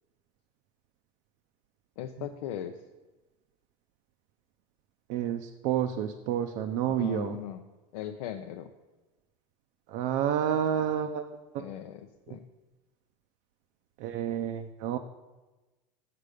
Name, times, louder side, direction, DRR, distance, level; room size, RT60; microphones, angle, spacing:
voice 1, 2.0-2.8 7.0-7.6 7.9-8.7 11.6-12.4, left 11 dB, 80° left, 6 dB, 0.6 m, -38 dB
voice 2, 5.1-7.4 9.9-11.2 12.3-12.4 14.0-15.0, right 9 dB, 60° right, 6 dB, 0.6 m, -29 dB
6.7 x 6.5 x 5.0 m, 1.1 s
supercardioid pair, 110°, 19 cm